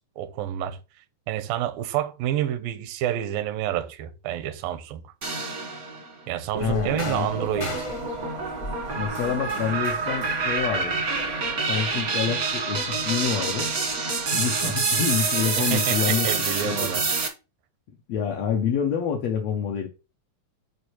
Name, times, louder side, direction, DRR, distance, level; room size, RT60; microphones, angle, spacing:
voice 1, 0.2-0.8 1.3-5.1 6.3-7.9 14.6-14.7 15.6-17.0, right 11 dB, 85° right, 2.4 m, -29 dB
sound 1, 5.2-6.1 6.5-17.3, right 4 dB, 65° right, 0.8 m, -27 dB
sound 2, 6.5-11.5, left 2 dB, 55° left, 0.7 m, -39 dB
voice 2, 6.6-7.5 9.0-11.0 11.7-13.7 14.3-16.3 16.6-16.9 18.1-19.9, left 8 dB, 85° left, 1.4 m, -27 dB
9.4 x 4.5 x 3.0 m
omnidirectional pair, 4.0 m